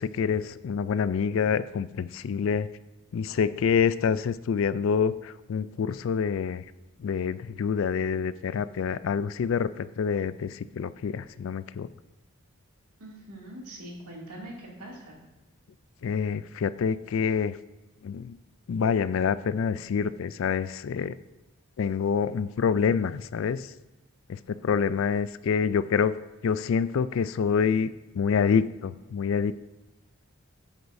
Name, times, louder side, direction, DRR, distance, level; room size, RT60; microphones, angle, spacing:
voice 1, 0.0-2.7 3.1-6.6 7.0-11.9 16.0-17.6 18.0-18.4 18.7-21.2 21.8-23.7 24.3-26.2 26.4-29.5, left 6 dB, 60° left, 16 dB, 0.3 m, -27 dB
voice 2, 13.0-15.2, right 1 dB, 90° right, -2 dB, 2.5 m, -42 dB
11.0 x 8.0 x 2.6 m, 1.1 s
head